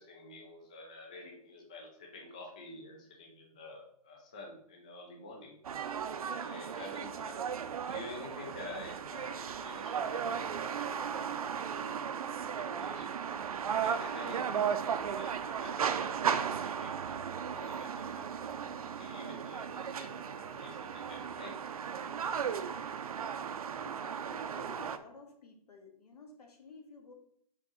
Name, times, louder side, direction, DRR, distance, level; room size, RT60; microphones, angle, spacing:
voice 1, 0.0-5.5 6.4-7.4 7.8-11.4 11.7-12.1 12.6-13.1 13.7-18.5 19.0-21.5, left 2 dB, 10° left, 0 dB, 0.3 m, -49 dB
sound 1, 5.6-25.0, right 7 dB, 70° right, 0.6 m, -36 dB
voice 2, 23.7-27.1, left 3 dB, 80° left, 2 dB, 1.7 m, -53 dB
5.3 x 3.6 x 5.4 m, 0.69 s
hypercardioid pair, 175°, 20 cm